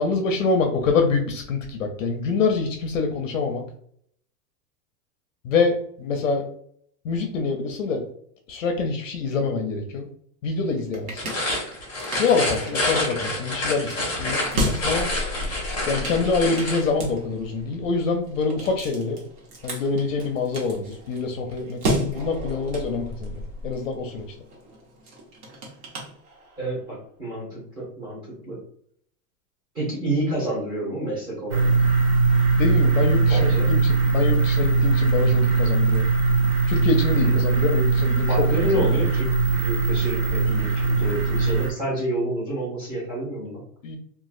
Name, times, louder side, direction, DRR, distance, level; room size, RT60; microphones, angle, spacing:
voice 1, 0.0-3.6 5.4-6.4 7.0-8.0 8.5-10.1 10.4-11.2 12.2-15.1 15.9-19.2 19.6-24.2 32.6-36.0 36.7-38.3 43.8-44.0, left 4 dB, 55° left, 4 dB, 0.5 m, -25 dB
sound 1, 10.5-26.8, equal, 70° right, 1.0 m, -34 dB
sound 2, 11.1-16.9, left 1 dB, 10° left, 0.7 m, -28 dB
voice 2, 26.6-28.6 29.7-31.7 33.3-33.7 37.2-37.4 38.3-43.6, right 1 dB, 20° right, -6 dB, 0.9 m, -29 dB
sound 3, 31.5-41.7, right 4 dB, 50° right, 0.7 m, -20 dB
3.0 x 2.3 x 2.4 m, 0.63 s
supercardioid pair, 180°, 48 cm